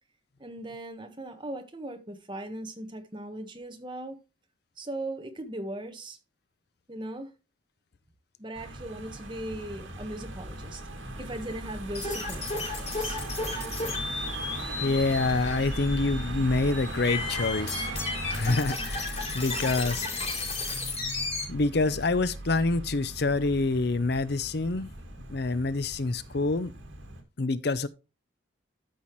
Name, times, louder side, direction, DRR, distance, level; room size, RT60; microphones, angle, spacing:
voice 1, 0.4-4.2 4.8-6.2 6.9-7.3 8.4-10.8 11.2-13.2, right 1 dB, 25° right, 1.4 m, -38 dB
Car passing by / Engine, 8.5-27.2, right 1 dB, 80° right, 2.4 m, -38 dB
sound 1, 11.9-21.4, left 3 dB, 30° left, 3.9 m, -34 dB
voice 2, 14.8-17.9 18.3-20.1 21.5-24.9 25.3-26.7 27.4-27.9, left 3 dB, 55° left, 0.6 m, -27 dB
12.5 x 5.7 x 3.1 m
head